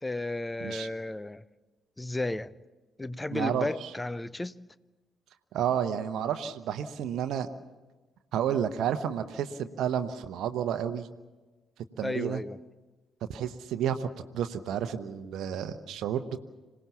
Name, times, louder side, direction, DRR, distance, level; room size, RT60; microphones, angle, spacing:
voice 1, 0.0-1.4 2.0-2.5 3.0-4.5 12.0-12.6, left 2 dB, 15° left, 0.7 m, -33 dB
voice 2, 3.3-3.9 5.5-7.5 8.3-11.1 12.0-12.4 13.3-14.1 14.3-16.4, right 9 dB, 60° right, 0.9 m, -31 dB
26.0 x 18.0 x 7.2 m
figure-of-eight pair, 45°, 0 cm